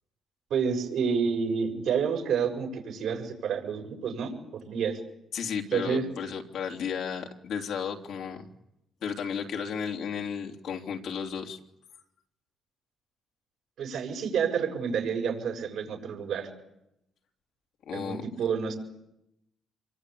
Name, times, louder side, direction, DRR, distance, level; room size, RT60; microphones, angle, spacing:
voice 1, 0.5-5.0 5.7-6.1 13.8-16.5 17.9-18.7, right 6 dB, 75° right, 2 dB, 7.4 m, -29 dB
voice 2, 5.3-8.5 9.0-11.6 17.8-18.2, left 7 dB, 75° left, 2 dB, 3.2 m, -33 dB
27.0 x 23.0 x 8.6 m, 0.85 s
cardioid pair, 90°, 0 cm